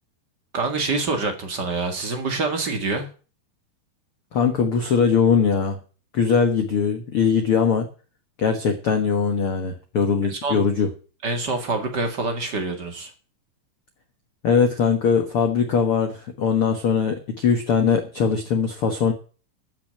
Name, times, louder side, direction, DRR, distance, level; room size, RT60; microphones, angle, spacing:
voice 1, 0.5-3.1 10.3-10.6 11.2-13.1, right 3 dB, 35° right, 5 dB, 2.0 m, -26 dB
voice 2, 4.3-5.8 6.1-7.9 8.4-10.9 14.4-19.1, left 6 dB, 55° left, 6 dB, 1.6 m, -21 dB
13.5 x 6.1 x 8.8 m, 0.38 s
omnidirectional pair, 4.4 m